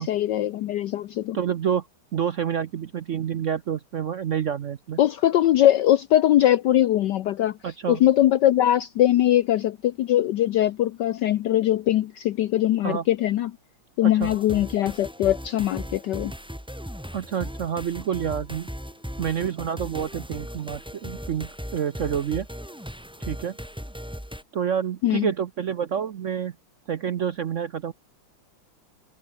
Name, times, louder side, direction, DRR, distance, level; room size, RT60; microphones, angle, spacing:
voice 1, 0.0-1.4 5.0-7.6 7.9-13.5 14.0-16.3 25.0-25.3, left 12 dB, 70° left, 1.2 m, -21 dB
voice 2, 1.3-1.9 2.1-5.0 7.6-8.0 12.8-13.0 14.0-14.3 17.1-18.7 19.2-22.5 23.3-23.6 24.5-26.5 26.9-27.9, right 8 dB, 70° right, 0.7 m, -28 dB
sound 1, 14.2-24.4, equal, ahead, 6.5 m, -37 dB
omnidirectional pair, 2.3 m